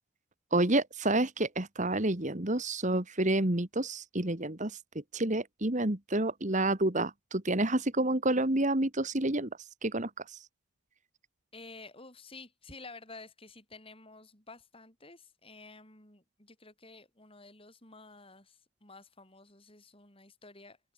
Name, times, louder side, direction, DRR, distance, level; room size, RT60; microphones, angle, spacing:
voice 1, 0.5-4.8 5.1-9.5 9.8-10.1, right 2 dB, 35° right, 1.8 m, -29 dB
voice 2, 11.5-20.9, left 3 dB, 25° left, 7.7 m, -51 dB
open air
head